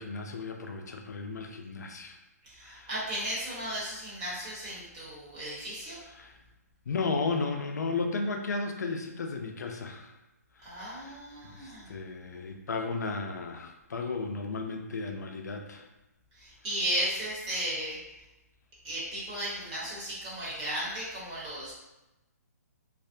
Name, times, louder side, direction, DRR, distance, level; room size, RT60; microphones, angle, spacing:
voice 1, 0.0-2.2 2.6-2.9 6.2-6.4 6.9-10.1 10.6-11.2 11.5-15.8, left 4 dB, 85° left, 4 dB, 0.4 m, -34 dB
voice 2, 2.4-6.0 10.6-11.9 16.4-18.0 18.8-21.7, right 1 dB, 30° right, -8 dB, 1.0 m, -35 dB
2.4 x 2.1 x 2.6 m, 0.98 s
hypercardioid pair, 155°, 9 cm